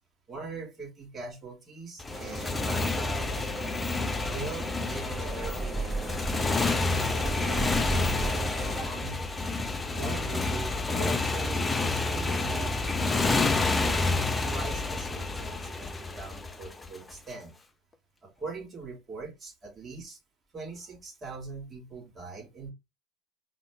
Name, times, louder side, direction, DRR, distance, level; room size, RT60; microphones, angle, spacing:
voice 1, 0.3-3.8 4.2-9.5 9.9-13.9 14.4-17.5 18.2-20.2 20.5-22.7, right 3 dB, 25° right, 2.4 m, -42 dB
Motorcycle, 2.0-17.1, left 3 dB, 15° left, 0.7 m, -29 dB
sound 1, 2.1-8.8, right 2 dB, 10° right, 1.9 m, -36 dB
4.6 x 3.1 x 3.4 m
hypercardioid pair, 75°, 0 cm